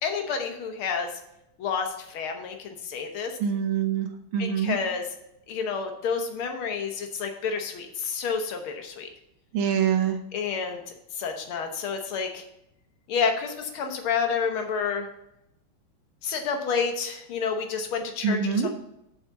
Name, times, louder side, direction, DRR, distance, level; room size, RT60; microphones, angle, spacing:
voice 1, 0.0-1.2 1.6-3.4 4.4-5.1 5.5-9.1 10.3-10.8 11.1-12.4 13.1-15.1 16.2-18.7, left 5 dB, 85° left, 4 dB, 2.0 m, -29 dB
voice 2, 3.4-4.1 4.3-4.8 9.5-10.2 18.2-18.7, right 7 dB, 75° right, 6 dB, 1.7 m, -24 dB
7.3 x 5.0 x 6.8 m, 0.82 s
omnidirectional pair, 2.3 m